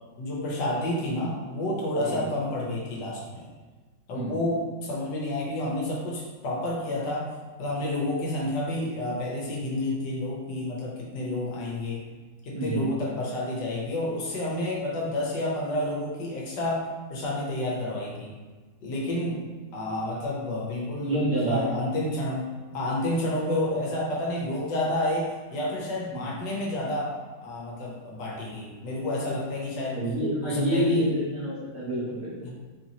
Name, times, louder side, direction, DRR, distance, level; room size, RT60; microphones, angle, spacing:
voice 1, 0.2-3.5 4.1-7.3 7.6-12.1 12.4-16.8 17.1-18.3 18.8-19.5 19.7-22.5 22.7-27.1 27.4-30.0 30.4-31.1 32.4-32.5, left 1 dB, 75° left, -3 dB, 1.5 m, -30 dB
voice 2, 12.5-12.9 21.0-21.8 26.1-26.2 29.9-32.5, right 1 dB, 55° right, -7 dB, 1.2 m, -27 dB
4.3 x 3.0 x 2.7 m, 1.3 s
omnidirectional pair, 1.9 m